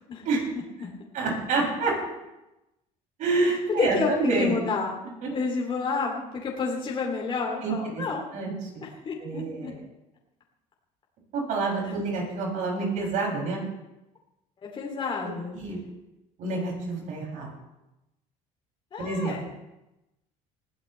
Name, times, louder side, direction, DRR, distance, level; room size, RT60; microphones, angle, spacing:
voice 1, 1.1-1.9 3.2-4.6 5.2-5.3 7.6-8.0 8.3-8.8 9.2-9.7 11.3-13.6 15.5-15.8 16.4-17.5 19.0-19.4, right 3 dB, 60° right, -1 dB, 7.1 m, -28 dB
voice 2, 3.8-5.0 5.3-8.3 8.8-9.7 11.8-11.9 14.6-15.6 18.9-19.4, left 4 dB, 35° left, -1 dB, 3.1 m, -30 dB
20.5 x 15.5 x 3.4 m, 0.96 s
cardioid pair, 120°, 15 cm